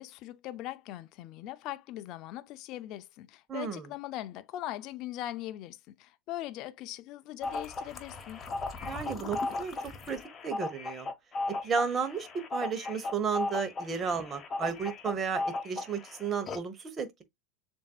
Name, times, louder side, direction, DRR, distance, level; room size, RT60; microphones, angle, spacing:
voice 1, 0.0-8.4, left 14 dB, 50° left, 0.4 m, -40 dB
voice 2, 3.5-3.8 8.8-9.8 10.1-10.2 10.4-11.1 11.6-17.2, right 6 dB, 30° right, 1.1 m, -33 dB
sound 1, 7.4-16.1 16.5-16.6, left 3 dB, 30° left, 1.0 m, -35 dB
7.0 x 2.7 x 2.3 m
hypercardioid pair, 85°, 0 cm